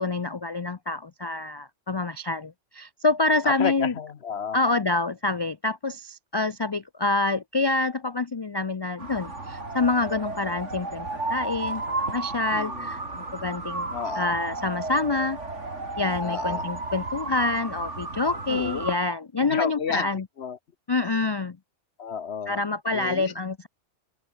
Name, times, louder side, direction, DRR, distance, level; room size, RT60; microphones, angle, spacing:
voice 1, 0.0-3.9 4.5-13.9 14.2-15.4 16.0-20.2 20.9-21.6 22.5-23.7, left 3 dB, 40° left, 0.3 m, -27 dB
voice 2, 3.4-4.6 12.5-12.9 13.9-14.4 16.2-16.6 18.5-18.9 19.4-20.6 21.0-21.3 22.0-22.6 22.9-23.3, left 7 dB, 65° left, 1.2 m, -32 dB
sound 1, 9.0-19.0, right 2 dB, 85° right, 4.2 m, -33 dB
open air
omnidirectional pair, 1.2 m